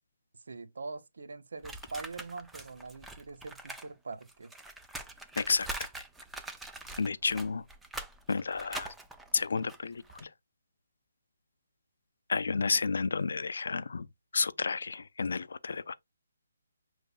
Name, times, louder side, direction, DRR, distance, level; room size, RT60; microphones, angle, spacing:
voice 1, 0.5-4.5, right 3 dB, 75° right, 0.7 m, -43 dB
sound 1, 1.6-3.9 4.1-10.2, right 2 dB, 5° right, 0.4 m, -43 dB
voice 2, 5.4-5.7 7.0-7.6 8.3-8.9 9.3-10.3 12.3-14.1 14.3-15.9, left 4 dB, 75° left, 0.4 m, -31 dB
6.7 x 3.1 x 2.3 m
hypercardioid pair, 165°, 0 cm